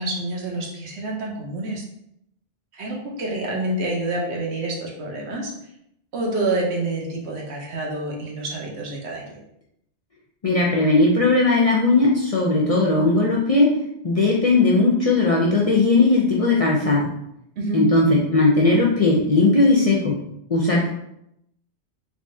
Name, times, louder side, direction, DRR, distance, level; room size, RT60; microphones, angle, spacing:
voice 1, 0.0-1.8 2.7-5.5 6.1-9.4 17.6-17.9, right 2 dB, 70° right, -1 dB, 1.1 m, -27 dB
voice 2, 10.4-13.7 14.0-17.1 17.7-20.1 20.5-20.9, left 2 dB, 45° left, -3 dB, 0.4 m, -18 dB
3.6 x 3.3 x 2.6 m, 0.78 s
omnidirectional pair, 1.2 m